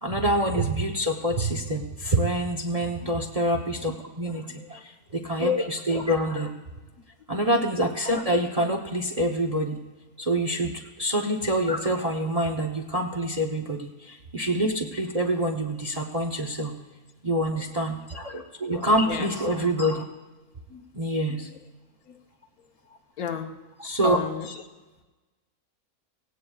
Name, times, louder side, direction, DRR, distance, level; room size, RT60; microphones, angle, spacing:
voice 1, 0.0-6.5 7.3-9.8 10.2-10.7 11.0-16.7 17.2-20.0 20.9-21.5 23.8-24.2, right 1 dB, 35° right, 2 dB, 0.7 m, -26 dB
voice 2, 4.5-4.8 19.0-19.3 20.7-20.9 21.3-21.4 22.1-22.2 23.2-23.5 24.0-24.6, left 7 dB, 70° left, 5 dB, 1.3 m, -33 dB
17.5 x 17.5 x 2.3 m, 1.2 s
omnidirectional pair, 1.7 m